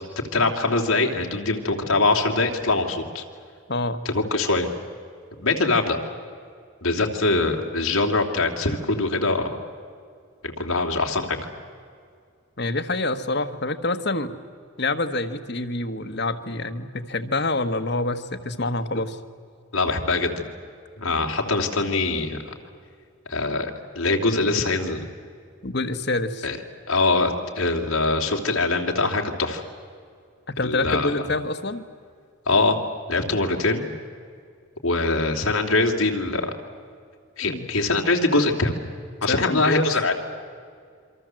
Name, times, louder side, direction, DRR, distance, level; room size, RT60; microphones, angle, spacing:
voice 1, 0.3-3.2 4.0-4.7 5.4-6.0 6.8-9.5 10.6-11.4 19.7-20.5 21.0-22.5 23.3-25.0 26.4-26.6 26.9-29.6 30.6-31.1 32.5-32.8 33.1-33.9 34.8-36.5 37.4-38.7 39.2-40.1, left 3 dB, 85° left, 1 dB, 3.1 m, -23 dB
voice 2, 3.7-4.1 12.6-14.3 14.8-19.2 25.6-26.5 30.5-31.9 37.4-37.7 39.3-39.9, left 2 dB, 50° left, 10 dB, 1.5 m, -26 dB
27.5 x 25.0 x 7.7 m, 2.2 s
head